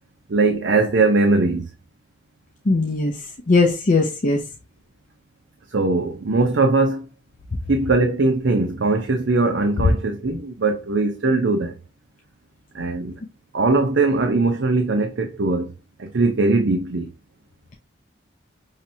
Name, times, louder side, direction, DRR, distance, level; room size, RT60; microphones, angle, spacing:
voice 1, 0.3-1.7 5.7-7.1 7.7-11.8 12.7-13.2 13.5-15.7 16.0-17.1, right 3 dB, 70° right, 0.6 m, -20 dB
voice 2, 2.7-3.1 3.5-4.4, left 3 dB, 40° left, 0.6 m, -19 dB
5.7 x 3.1 x 2.7 m
head